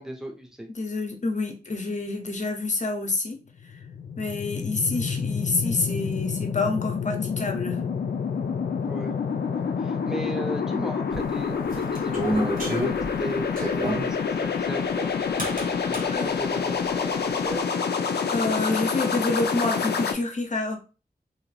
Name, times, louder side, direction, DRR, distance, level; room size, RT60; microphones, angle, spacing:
voice 1, 0.0-0.7 8.9-9.2 9.5-15.1 15.9-17.8, equal, 5° right, 0.7 m, -36 dB
voice 2, 0.8-3.4 4.2-7.8 16.1-16.3 18.3-20.8, left 3 dB, 45° left, 0.7 m, -27 dB
sound 1, 3.6-20.1, left 6 dB, 80° left, 0.4 m, -28 dB
sound 2, 11.1-14.1 15.4-16.1, equal, 55° right, 1.1 m, -29 dB
2.7 x 2.5 x 3.3 m
wide cardioid pair, 95°, 17 cm